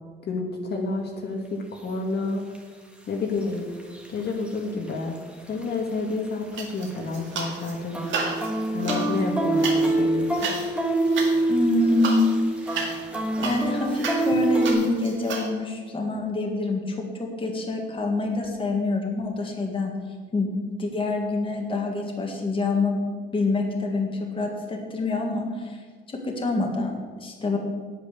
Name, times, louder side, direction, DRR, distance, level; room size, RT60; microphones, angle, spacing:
voice 1, 0.2-2.4 3.1-3.7 4.1-5.2 5.5-8.0 8.7-10.5, left 3 dB, 55° left, 1 dB, 1.6 m, -29 dB
sound 1, 1.8-1.9 2.5-2.6 3.4-4.6 4.9-5.2 5.5-7.1 7.4-14.7, right 2 dB, 5° right, 1.5 m, -25 dB
sound 2, 6.5-7.7 8.0-15.5, right 4 dB, 70° right, 2.0 m, -33 dB
voice 2, 11.5-12.3 13.4-19.9 20.3-20.5 20.8-23.0 23.3-24.1 24.4-25.8 26.2-27.6, left 2 dB, 25° left, 1 dB, 1.7 m, -26 dB
9.2 x 8.7 x 6.5 m, 1.5 s
cardioid pair, 145°, 20 cm